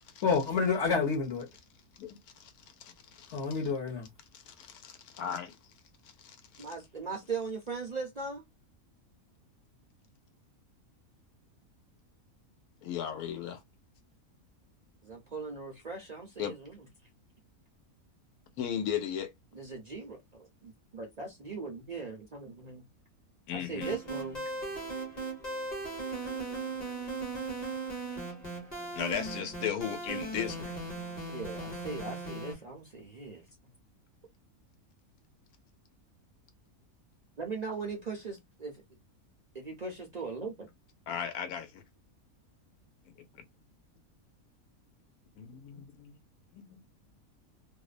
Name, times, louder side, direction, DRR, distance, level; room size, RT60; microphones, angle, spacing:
voice 1, 0.2-1.5 3.3-4.1, left 5 dB, 55° left, 1.0 m, -28 dB
voice 2, 2.0-2.5 2.8-3.4 4.5-5.6 6.5-6.7 12.8-13.6 16.4-16.5 18.6-19.3 23.5-23.9 28.1-28.2 28.9-30.7 41.1-41.8 45.4-46.1 46.5-46.8, left 8 dB, 85° left, 1.1 m, -36 dB
voice 3, 6.6-8.4 13.3-13.5 15.0-16.8 19.5-22.8 23.5-24.4 31.3-33.5 37.4-38.8 39.5-40.7, right 4 dB, 65° right, 0.4 m, -39 dB
sound 1, 23.8-32.5, right 3 dB, 30° left, 1.0 m, -38 dB
2.6 x 2.1 x 2.4 m
omnidirectional pair, 1.6 m